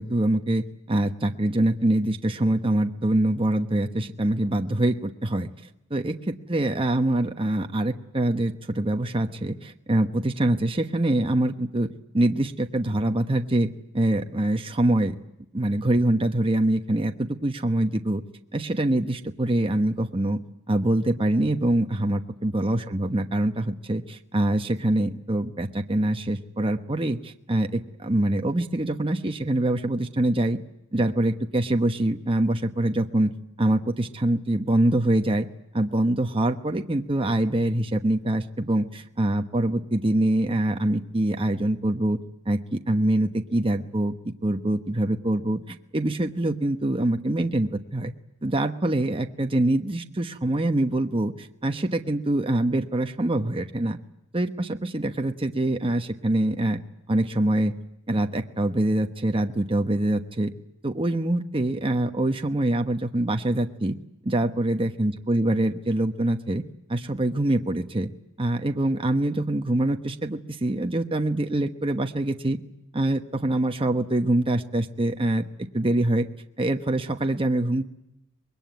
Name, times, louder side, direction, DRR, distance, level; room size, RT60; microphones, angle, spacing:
voice 1, 0.0-5.5 5.9-11.9 12.1-13.7 13.9-15.1 15.5-18.2 18.5-20.4 20.7-30.6 30.9-33.3 33.6-35.5 35.7-42.2 42.5-44.1 44.4-48.1 48.4-54.0 54.3-56.8 57.1-57.7 58.1-60.5 60.8-64.0 64.2-66.6 66.9-68.1 68.4-72.6 72.9-76.3 76.6-77.9, right 1 dB, 25° right, 5 dB, 1.0 m, -24 dB
25.0 x 21.5 x 9.3 m, 0.84 s
head